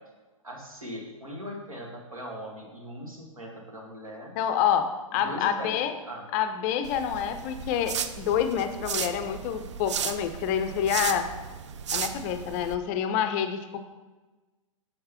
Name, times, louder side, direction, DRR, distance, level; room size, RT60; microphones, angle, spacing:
voice 1, 0.4-4.3 5.1-5.7 6.0-6.3, equal, 80° right, -1 dB, 1.6 m, -40 dB
voice 2, 4.4-5.9 6.3-11.3 11.9-13.8, left 9 dB, 30° left, 9 dB, 0.4 m, -27 dB
sound 1, 6.8-12.8, right 7 dB, 55° right, 0.4 m, -35 dB
6.5 x 6.3 x 2.9 m, 1.2 s
figure-of-eight pair, 115°, 18 cm